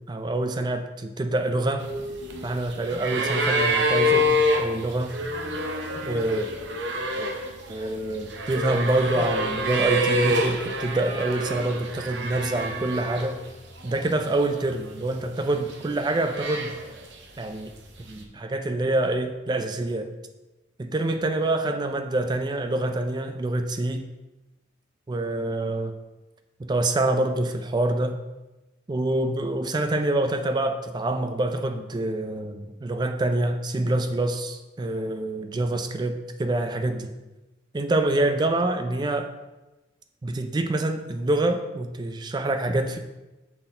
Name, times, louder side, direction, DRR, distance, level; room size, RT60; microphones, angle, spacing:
voice 1, 0.1-1.9 2.4-5.1 6.0-6.5 7.2-7.3 7.7-13.4 13.8-16.8 17.4-17.7 18.1-20.1 20.8-24.1 25.1-25.9 26.6-28.2 28.9-37.1 37.7-39.3 40.2-43.0, right 2 dB, 20° right, 7 dB, 0.3 m, -26 dB
sound 1, 1.8-13.5 13.8-14.7 15.4-17.1 18.2-18.3, equal, 60° right, 0.7 m, -27 dB
6.0 x 4.1 x 3.8 m, 1.1 s
head